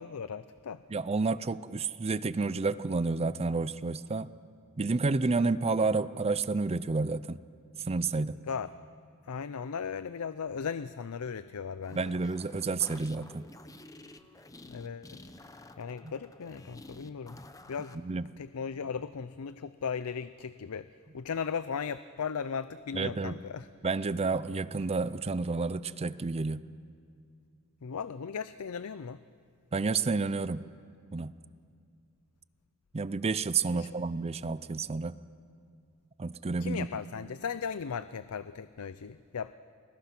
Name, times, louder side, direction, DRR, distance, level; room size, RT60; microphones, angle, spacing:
voice 1, 0.0-0.8 8.5-8.7 9.3-12.1 14.7-15.2 15.8-17.4 17.7-18.0 18.4-20.9 21.1-23.7 27.8-29.2 33.7-33.9 36.6-39.5, left 6 dB, 80° left, 14 dB, 0.5 m, -37 dB
voice 2, 0.9-4.3 4.8-7.4 7.9-8.4 11.9-13.5 16.0-16.1 18.0-18.2 22.9-23.3 23.8-26.6 29.7-30.6 31.1-31.3 32.9-35.2 36.2-36.9, right 3 dB, 30° right, 16 dB, 0.5 m, -30 dB
sound 1, 11.8-18.0, left 2 dB, 15° left, 0.9 m, -51 dB
30.0 x 21.0 x 6.0 m, 2.4 s
head